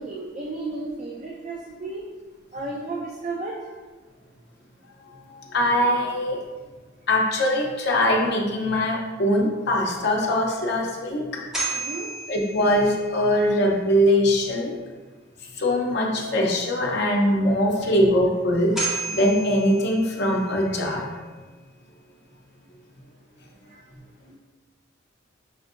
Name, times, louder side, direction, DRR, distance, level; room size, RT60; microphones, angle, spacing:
voice 1, 0.0-2.0 2.5-3.7 11.7-12.1 23.7-23.8, right 3 dB, 35° right, -3 dB, 0.4 m, -33 dB
voice 2, 5.5-6.4 7.1-11.4 12.3-14.8 15.6-18.8 19.1-21.1 24.3-24.4, left 1 dB, 55° left, -1 dB, 0.7 m, -22 dB
sound 1, 11.3-13.4 18.4-18.5 18.8-20.7, right 3 dB, ahead, 1.0 m, -32 dB
5.6 x 2.6 x 2.5 m, 1.3 s
head